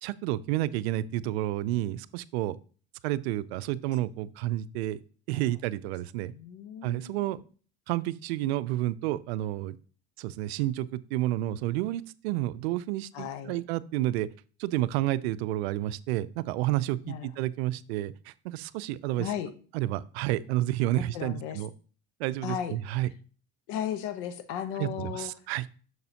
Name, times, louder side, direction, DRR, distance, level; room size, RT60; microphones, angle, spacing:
voice 1, 0.0-2.6 3.0-5.0 5.3-6.3 6.8-7.4 7.9-9.8 10.2-14.3 14.6-19.3 19.7-21.7 22.2-23.1 24.8-25.6, right 15 dB, 80° right, 17 dB, 0.5 m, -30 dB
voice 2, 6.3-7.2 13.1-13.6 17.0-17.3 19.2-19.5 20.9-21.6 22.4-22.7 23.7-25.3, left 9 dB, 70° left, 11 dB, 1.1 m, -35 dB
6.7 x 6.6 x 2.8 m, 0.40 s
supercardioid pair, 100°, 32 cm